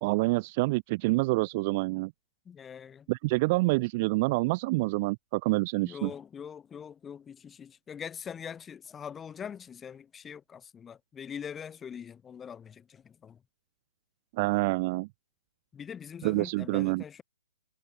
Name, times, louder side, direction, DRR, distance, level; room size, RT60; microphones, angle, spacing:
voice 1, 0.0-2.1 3.1-6.1 14.3-15.1 16.2-17.0, right 24 dB, 40° right, 0.3 m, -27 dB
voice 2, 2.4-3.1 5.8-13.4 15.7-17.2, left 7 dB, 15° left, 1.4 m, -43 dB
hypercardioid pair, 140°, 0 cm